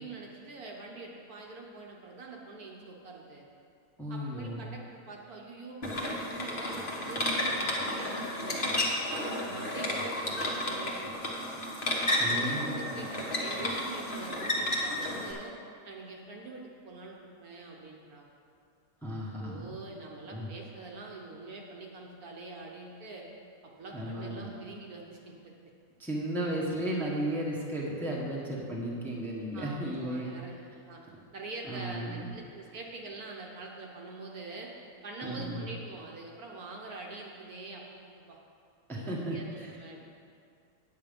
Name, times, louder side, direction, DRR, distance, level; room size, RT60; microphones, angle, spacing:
voice 1, 0.0-3.4 4.1-8.8 9.2-11.5 12.2-15.5 15.8-18.3 19.4-23.3 23.6-25.5 29.5-30.5 30.9-31.0 31.3-34.7 35.0-38.4 38.9-40.0, right 3 dB, 60° right, -1 dB, 1.4 m, -45 dB
voice 2, 4.0-4.6 12.2-13.0 19.0-19.8 20.3-20.5 23.9-24.5 26.0-30.3 31.7-32.3 35.2-35.6 38.9-39.7, right 1 dB, ahead, -4 dB, 1.2 m, -34 dB
sound 1, 5.8-15.3, left 1 dB, 35° left, 1.3 m, -32 dB
8.7 x 8.5 x 5.2 m, 2.4 s
omnidirectional pair, 1.9 m